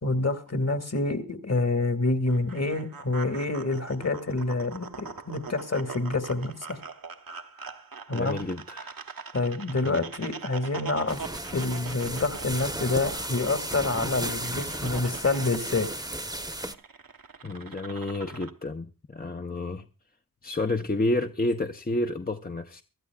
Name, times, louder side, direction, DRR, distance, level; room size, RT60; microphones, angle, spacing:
voice 1, 0.0-6.8 8.1-8.4 9.3-11.2 11.5-15.9, left 2 dB, 45° left, 1.9 m, -27 dB
sound 1, 2.3-18.5, right 5 dB, 75° right, 1.1 m, -43 dB
voice 2, 8.1-9.0 9.8-10.0 17.4-19.8 20.4-22.8, left 2 dB, 25° left, 0.7 m, -30 dB
sound 2, 11.1-16.7, right 1 dB, 10° right, 0.9 m, -34 dB
24.0 x 12.5 x 2.3 m
wide cardioid pair, 65°, 35 cm